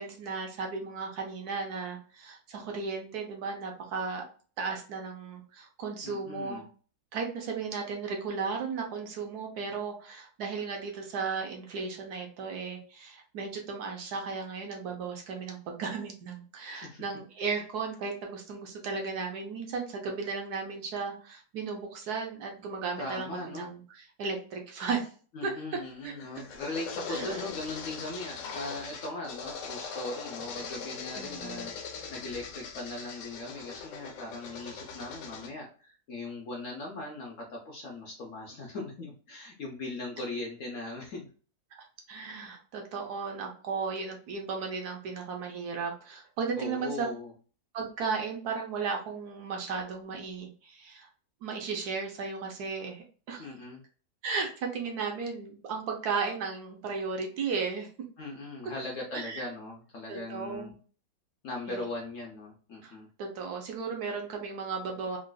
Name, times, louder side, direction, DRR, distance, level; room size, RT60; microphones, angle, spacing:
voice 1, 0.0-4.2 4.6-6.6 7.1-25.1 25.4-25.5 26.0-26.1 27.1-27.4 31.2-31.7 41.8-47.1 47.7-51.1 51.4-53.5 54.2-57.9 59.1-59.5 60.1-60.7 61.7-61.8 62.8-62.9 63.2-65.2, right 5 dB, 70° right, 1 dB, 1.2 m, -35 dB
voice 2, 6.0-6.7 16.7-17.0 17.5-17.6 23.0-23.7 25.3-41.3 46.6-47.3 53.4-53.8 58.2-60.7 61.4-63.1, left 2 dB, 60° left, -1 dB, 0.9 m, -39 dB
sound 1, 25.8-35.5, left 5 dB, 80° left, 1.3 m, -41 dB
3.9 x 2.4 x 2.2 m, 0.40 s
omnidirectional pair, 1.9 m